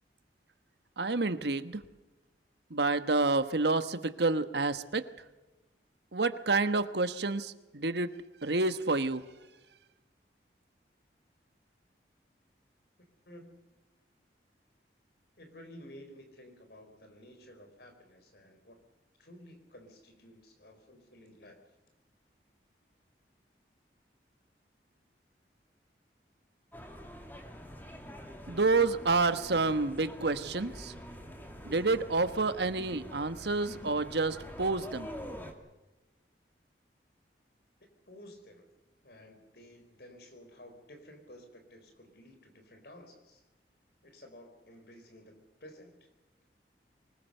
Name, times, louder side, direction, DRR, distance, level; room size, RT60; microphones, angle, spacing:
voice 1, 1.0-1.8 2.7-5.1 6.1-8.1 8.4-9.2 28.5-30.9 31.6-35.1, right 3 dB, 70° right, 11 dB, 1.2 m, -29 dB
voice 2, 13.3-13.6 15.4-18.8 19.2-21.6 38.1-38.7 39.0-43.4 44.0-46.1, left 1 dB, 60° left, 6 dB, 4.5 m, -53 dB
sound 1, 26.7-35.5, equal, 10° left, 2.3 m, -46 dB
25.0 x 20.0 x 6.7 m, 1.1 s
head